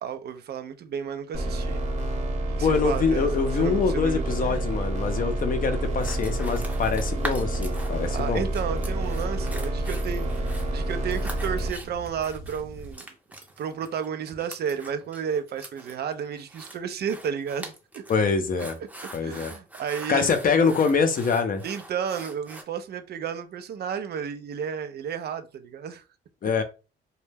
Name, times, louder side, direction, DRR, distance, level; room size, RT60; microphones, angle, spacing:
voice 1, 0.0-1.8 2.5-4.6 8.1-10.5 10.7-13.1 13.6-18.0 18.8-18.9 19.2-20.4 21.6-26.0, right 7 dB, 55° right, 0.4 m, -32 dB
sound 1, 1.3-11.7, right 1 dB, 35° right, 0.8 m, -28 dB
voice 2, 2.6-8.4 18.1-18.8 19.1-19.5 20.1-21.6 26.4-26.6, left 5 dB, 45° left, 0.5 m, -24 dB
sound 2, 5.8-12.9, right 1 dB, 85° right, 0.8 m, -42 dB
sound 3, 6.0-8.2 8.5-22.6, right 1 dB, 5° right, 0.6 m, -42 dB
2.2 x 2.1 x 3.3 m
cardioid pair, 90°, 20 cm